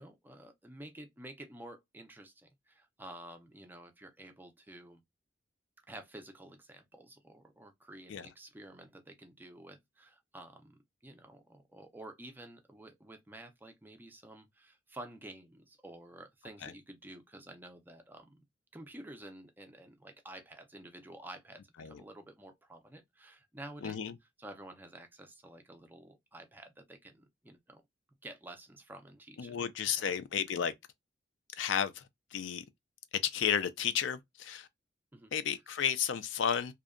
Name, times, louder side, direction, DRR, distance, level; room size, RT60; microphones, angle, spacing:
voice 1, 0.0-5.0 5.9-18.4 18.7-24.0 24.4-27.8 28.2-29.6 29.9-30.1 35.1-35.3, right 1 dB, 10° right, 0.4 m, -51 dB
voice 2, 23.8-24.1 29.4-30.7 31.6-32.0 32.3-32.6 33.1-34.7 35.3-36.7, left 8 dB, 70° left, 0.4 m, -32 dB
2.7 x 2.1 x 2.3 m
head